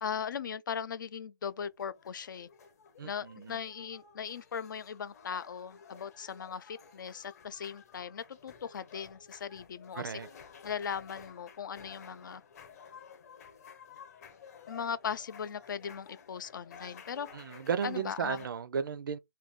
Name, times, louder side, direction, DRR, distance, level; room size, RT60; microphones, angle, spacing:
voice 1, 0.0-2.5 3.0-10.2 10.6-12.4 14.7-17.3 17.8-18.4, left 7 dB, 65° left, 0.4 m, -38 dB
sound 1, 1.5-18.5, left 6 dB, 45° left, 0.9 m, -53 dB
voice 2, 3.0-3.6 9.9-10.3 17.3-19.2, right 7 dB, 70° right, 0.4 m, -34 dB
2.6 x 2.2 x 3.4 m
hypercardioid pair, 160°, 12 cm